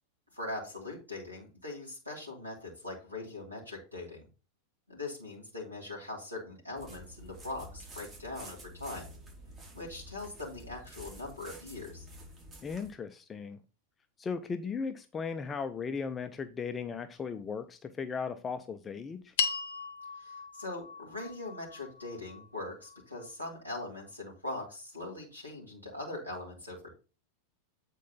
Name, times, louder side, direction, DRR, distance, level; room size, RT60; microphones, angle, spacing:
voice 1, 0.3-4.2 4.9-9.1 9.7-12.1 20.2-26.9, left 2 dB, 90° right, -3 dB, 2.6 m, -41 dB
sound 1, 6.8-12.9, right 1 dB, 25° right, 3.4 m, -50 dB
voice 2, 12.6-13.6 14.2-19.3, left 5 dB, 20° left, 9 dB, 0.6 m, -37 dB
sound 2, 19.4-23.8, left 5 dB, 55° left, 0.9 m, -38 dB
8.4 x 4.5 x 4.0 m, 0.33 s
figure-of-eight pair, 90°, 0 cm